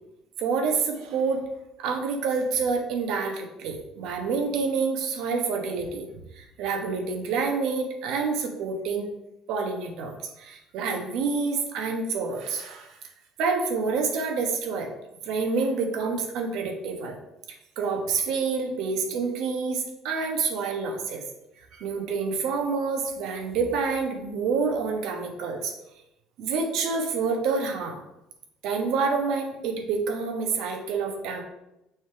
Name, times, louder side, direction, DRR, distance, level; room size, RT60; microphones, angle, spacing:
voice 1, 0.4-1.4 1.8-6.1 6.3-9.1 9.5-13.0 13.4-14.9 15.2-17.2 17.8-21.2 21.7-25.7 26.4-28.0 28.6-31.4, right 4 dB, 65° right, 3 dB, 1.2 m, -28 dB
6.2 x 3.6 x 4.7 m, 0.89 s
cardioid pair, 155°, 0 cm